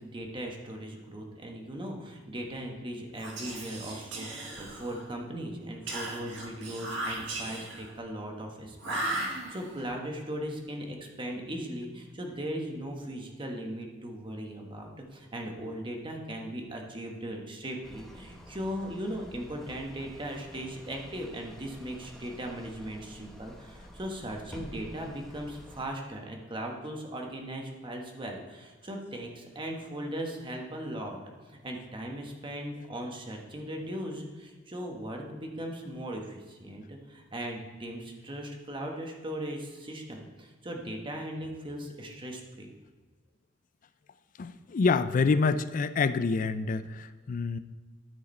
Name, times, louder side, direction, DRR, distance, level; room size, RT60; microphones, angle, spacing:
voice 1, 0.0-31.2 31.5-42.7, right 1 dB, 25° right, 1 dB, 1.2 m, -38 dB
Whispering, 3.1-5.1 5.9-7.9 8.8-9.8, right 2 dB, 70° right, 1.8 m, -36 dB
sound 1, 17.8-25.9, equal, ahead, 0.9 m, -49 dB
voice 2, 44.4-47.6, left 4 dB, 45° left, 13 dB, 0.4 m, -27 dB
13.0 x 4.8 x 4.3 m, 1.4 s
head